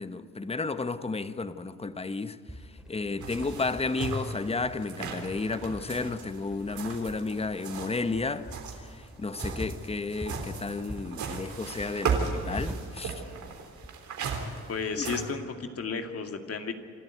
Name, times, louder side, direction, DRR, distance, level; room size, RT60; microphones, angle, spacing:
voice 1, 0.0-2.4 2.6-13.2 15.0-15.1, left 3 dB, 20° left, 1.0 m, -32 dB
sound 1, 2.5-13.9, right 1 dB, ahead, 2.4 m, -43 dB
sound 2, 3.2-8.1 8.4-15.3, right 5 dB, 70° right, 3.6 m, -36 dB
voice 2, 14.7-16.7, left 5 dB, 50° left, 2.2 m, -33 dB
27.0 x 13.0 x 9.3 m
cardioid pair, 90°, 30 cm